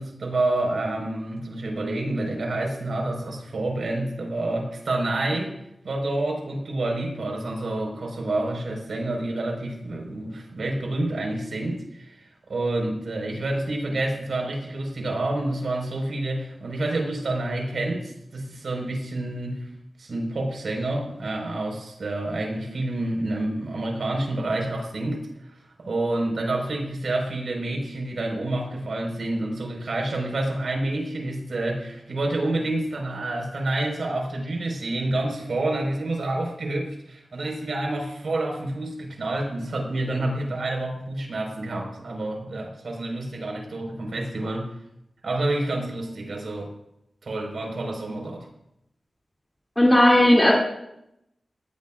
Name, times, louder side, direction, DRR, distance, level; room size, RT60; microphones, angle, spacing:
voice 1, 0.0-5.6 5.8-19.7 20.0-44.7 45.2-46.7 47.2-48.5, right 2 dB, 80° right, 1 dB, 4.8 m, -28 dB
voice 2, 49.8-50.5, left 1 dB, 15° left, -4 dB, 2.8 m, -15 dB
19.0 x 18.0 x 2.5 m, 0.82 s
wide cardioid pair, 95°, 0 cm